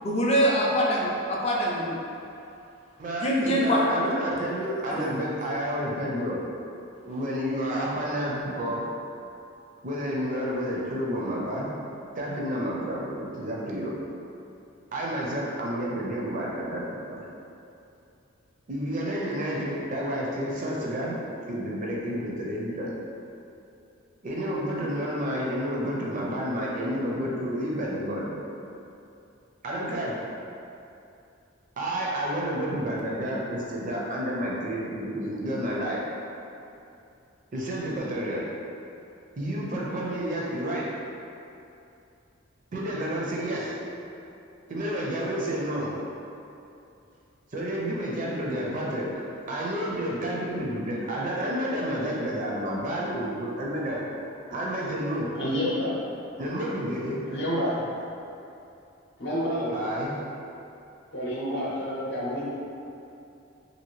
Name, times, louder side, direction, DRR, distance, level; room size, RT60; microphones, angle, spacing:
voice 1, 0.0-2.0 3.2-3.9 4.9-5.0, equal, 30° left, -3 dB, 0.4 m, -24 dB
voice 2, 3.0-6.5 7.0-8.9 9.8-11.7 12.1-14.0 14.9-17.3 18.7-21.2 21.5-22.9 24.2-28.4 29.6-30.2 31.8-36.0 37.5-38.5 39.4-40.9 42.7-43.8 44.7-45.9 47.5-54.0 54.5-55.3 56.4-57.6 59.7-60.1, equal, 40° right, -4 dB, 0.5 m, -30 dB
voice 3, 55.3-56.0 57.3-57.8 59.2-59.7 61.1-62.5, equal, 60° left, -6 dB, 0.7 m, -29 dB
2.8 x 2.6 x 3.0 m, 2.7 s
head